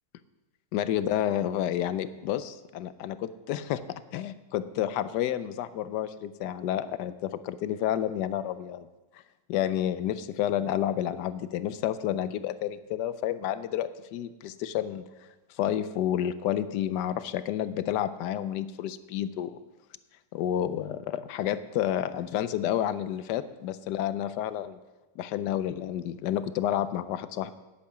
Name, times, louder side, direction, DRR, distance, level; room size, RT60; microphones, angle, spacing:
voice 1, 0.7-8.9 9.1-9.2 9.5-15.1 15.6-19.6 20.3-24.8 25.2-27.5, left 11 dB, 75° left, 14 dB, 1.1 m, -30 dB
10.0 x 8.5 x 6.0 m, 1.1 s
omnidirectional pair, 2.0 m